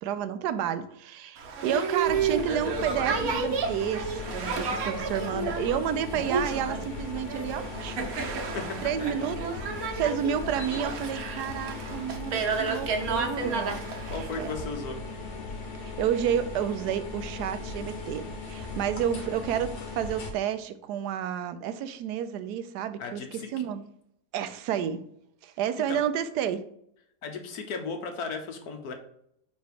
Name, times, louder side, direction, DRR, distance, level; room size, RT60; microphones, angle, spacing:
voice 1, 0.0-8.0 8.8-14.6 15.8-23.8 24.3-25.0 25.4-26.6, right 9 dB, 85° right, 1.1 m, -30 dB
Boat Water vehicle, 1.4-14.5, right 4 dB, 65° right, 1.3 m, -31 dB
sound 1, 2.0-20.3, left 4 dB, 85° left, 1.8 m, -38 dB
voice 2, 8.5-9.1 13.8-15.0 23.0-23.5 25.8-26.0 27.2-28.9, left 4 dB, 70° left, 1.5 m, -36 dB
5.2 x 4.1 x 4.8 m
omnidirectional pair, 1.7 m